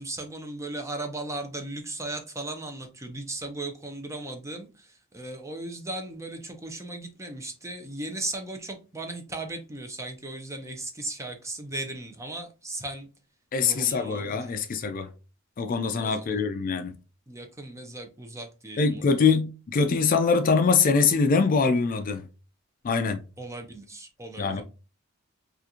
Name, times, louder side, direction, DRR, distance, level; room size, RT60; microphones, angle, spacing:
voice 1, 0.0-4.9 5.1-13.1 13.6-14.4 16.0-16.3 17.3-19.2 23.4-24.6, right 2 dB, 15° right, 0.5 m, -37 dB
voice 2, 13.5-15.1 15.6-16.9 18.8-22.2 22.8-23.2 24.4-24.6, left 5 dB, 40° left, 0.3 m, -23 dB
3.7 x 2.4 x 2.8 m
head